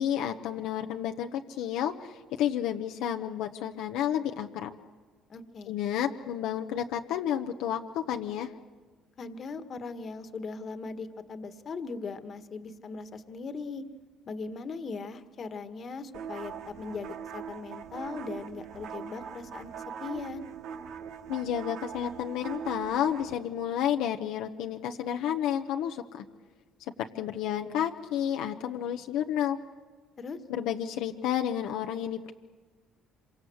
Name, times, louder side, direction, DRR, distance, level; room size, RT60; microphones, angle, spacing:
voice 1, 0.0-4.7 5.7-8.5 21.3-26.2 27.0-29.6 30.5-32.3, left 10 dB, 80° left, 4 dB, 1.0 m, -31 dB
voice 2, 5.3-5.8 9.2-13.8 14.3-20.5 30.2-30.4, left 4 dB, 45° left, 9 dB, 1.6 m, -39 dB
sound 1, 16.1-23.3, right 8 dB, 70° right, 1.4 m, -41 dB
26.0 x 24.0 x 8.0 m, 1.4 s
supercardioid pair, 90°, 0 cm